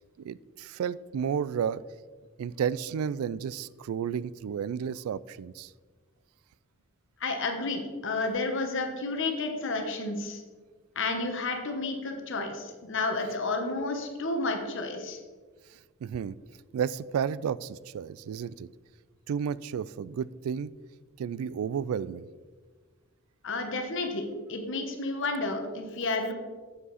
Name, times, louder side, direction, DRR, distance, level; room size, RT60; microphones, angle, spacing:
voice 1, 0.2-1.8 2.4-5.7 16.0-16.4 16.7-18.7 19.3-20.7 21.2-22.3, right 7 dB, 90° right, 20 dB, 0.3 m, -32 dB
voice 2, 7.2-10.4 10.9-15.2 23.4-26.3, left 3 dB, 60° left, 5 dB, 1.2 m, -31 dB
8.1 x 7.5 x 4.1 m, 1.4 s
head